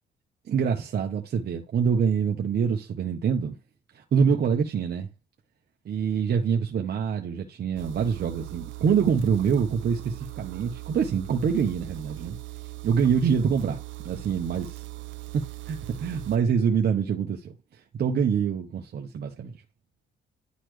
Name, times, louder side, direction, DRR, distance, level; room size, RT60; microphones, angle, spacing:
voice 1, 0.4-3.6 3.9-5.1 5.8-12.4 12.8-14.8 15.3-19.5, right 7 dB, 55° right, 1.0 m, -25 dB
sound 1, 7.8-16.4, right 19 dB, 75° right, 0.5 m, -40 dB
10.5 x 4.1 x 3.2 m
cardioid pair, 90°, 20 cm